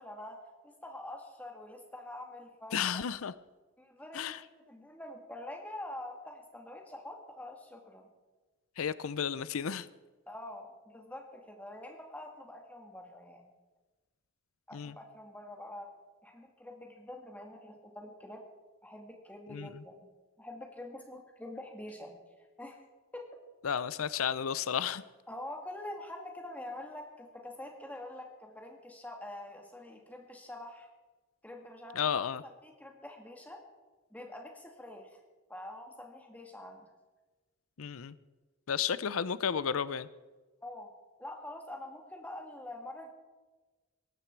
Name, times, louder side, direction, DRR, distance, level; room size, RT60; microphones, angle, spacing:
voice 1, 0.0-3.0 3.8-8.1 10.3-13.5 14.7-15.9 16.2-18.4 18.8-20.0 20.4-22.1 22.6-22.8 23.1-23.2 25.3-30.9 31.4-32.3 32.6-33.6 34.1-35.1 35.5-36.9 40.6-40.9 41.2-43.1, left 1 dB, 5° left, 2 dB, 2.2 m, -45 dB
voice 2, 2.7-3.3 4.1-4.4 8.8-9.9 14.7-14.9 19.5-19.7 23.6-25.0 31.9-32.4 37.8-38.1 38.7-40.1, left 7 dB, 90° left, 17 dB, 0.6 m, -32 dB
18.5 x 14.5 x 4.6 m, 1.2 s
head